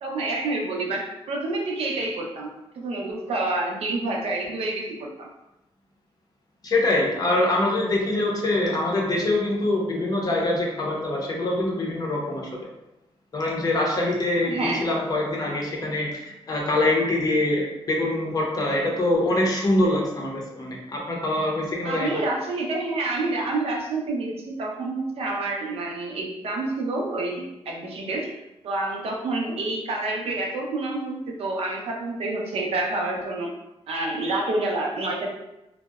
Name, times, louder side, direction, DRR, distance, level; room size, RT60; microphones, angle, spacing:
voice 1, 0.0-5.3 14.4-14.9 21.8-28.3 28.6-33.5 33.9-35.3, right 2 dB, 70° right, 0 dB, 0.5 m, -28 dB
voice 2, 6.6-12.7 13.3-22.2, left 1 dB, 40° left, -1 dB, 0.5 m, -24 dB
2.7 x 2.0 x 2.2 m, 0.93 s
wide cardioid pair, 130°, 10 cm